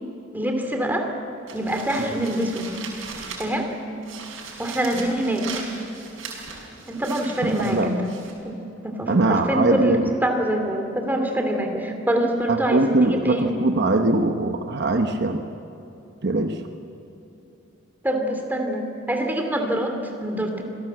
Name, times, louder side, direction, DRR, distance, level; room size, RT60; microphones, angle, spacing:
voice 1, 0.3-1.1 1.5-2.7 3.4-3.7 4.6-5.5 6.9-8.1 8.4-8.6 8.8-13.5 18.0-19.9 20.2-20.6, right 1 dB, 10° right, 3 dB, 2.8 m, -25 dB
sound 1, 1.5-3.7 4.0-8.3, right 5 dB, 75° right, 5.6 m, -38 dB
voice 2, 7.4-7.9 9.1-10.0 12.5-15.4 16.2-16.6, right 2 dB, 55° right, 5 dB, 1.0 m, -21 dB
26.5 x 18.0 x 7.7 m, 3.0 s
head